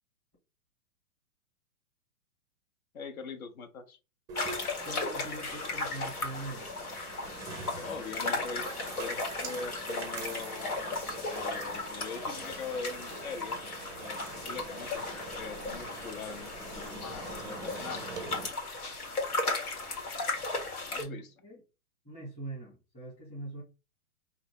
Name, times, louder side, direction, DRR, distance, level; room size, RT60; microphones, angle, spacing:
voice 1, 2.9-4.0 7.8-13.6 14.0-18.3 20.9-21.3, left 4 dB, 70° left, 1.3 m, -42 dB
sound 1, 4.3-21.0, left 3 dB, 85° left, 1.9 m, -36 dB
sound 2, 4.3-18.5, right 4 dB, 10° right, 0.4 m, -45 dB
voice 2, 4.8-6.7 21.0-21.6 22.0-23.6, right 2 dB, 15° left, 1.4 m, -42 dB
5.1 x 2.8 x 3.2 m
hypercardioid pair, 135°, 43 cm